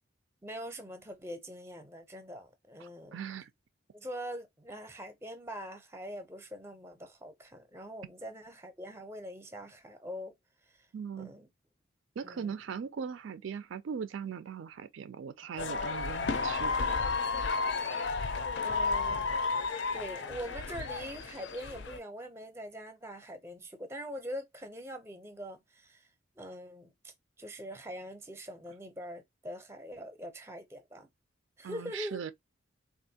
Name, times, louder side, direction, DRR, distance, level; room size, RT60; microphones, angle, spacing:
voice 1, 0.4-3.2 3.9-10.3 10.7-10.9 11.2-11.5 12.2-12.5 17.8-17.9 18.6-19.4 19.9-26.1 26.4-31.1 31.6-32.2, equal, 10° right, 0.6 m, -43 dB
voice 2, 2.8-3.5 10.9-11.3 12.2-16.9 31.6-32.3, right 6 dB, 70° right, 0.4 m, -39 dB
sound 1, 15.6-22.0, left 4 dB, 60° left, 0.5 m, -32 dB
3.4 x 2.5 x 2.7 m
head